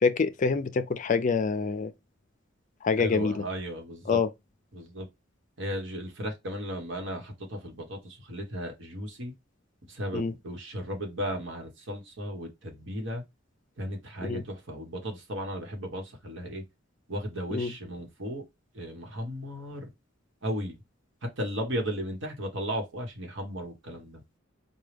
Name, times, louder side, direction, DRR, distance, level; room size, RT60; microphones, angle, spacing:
voice 1, 0.0-1.9 2.8-3.4 4.1-4.3 10.1-10.3 14.3-14.4 17.5-17.7, left 5 dB, 40° left, 0.4 m, -26 dB
voice 2, 3.0-4.2 4.7-5.1 5.6-9.3 9.9-13.2 13.8-16.6 17.1-18.4 18.7-19.8 20.4-20.7 21.4-24.2, equal, 65° right, 1.3 m, -35 dB
4.7 x 2.3 x 3.3 m
head